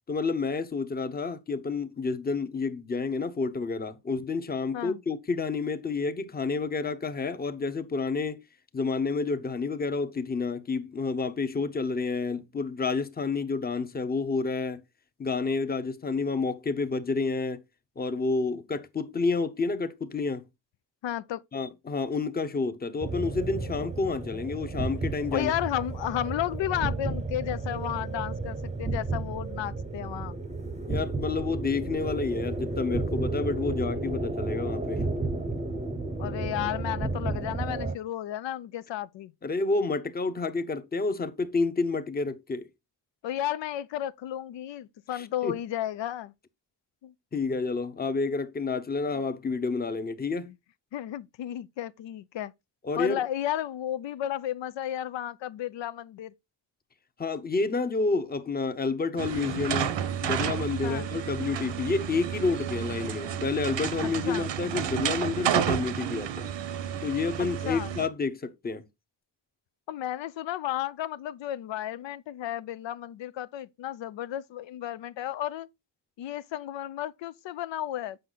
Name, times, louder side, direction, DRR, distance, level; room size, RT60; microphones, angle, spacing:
voice 1, 0.1-8.4 8.7-14.8 15.2-17.6 18.0-20.4 21.5-25.5 30.9-35.0 39.4-42.7 45.1-45.6 47.3-50.5 52.8-53.2 57.2-60.0 60.2-66.5 67.0-68.8, left 4 dB, 20° left, 0.7 m, -29 dB
voice 2, 21.0-21.4 25.3-30.3 36.2-39.3 43.2-46.3 47.0-47.1 50.5-50.6 50.9-52.5 53.0-56.3 60.8-61.1 64.3-64.5 67.4-67.9 69.9-75.7 76.2-78.2, left 12 dB, 85° left, 0.6 m, -33 dB
sound 1, 23.0-37.9, right 3 dB, 15° right, 0.7 m, -32 dB
sound 2, 59.2-68.1, right 9 dB, 85° right, 1.0 m, -31 dB
7.8 x 5.5 x 3.9 m
wide cardioid pair, 140°, 43 cm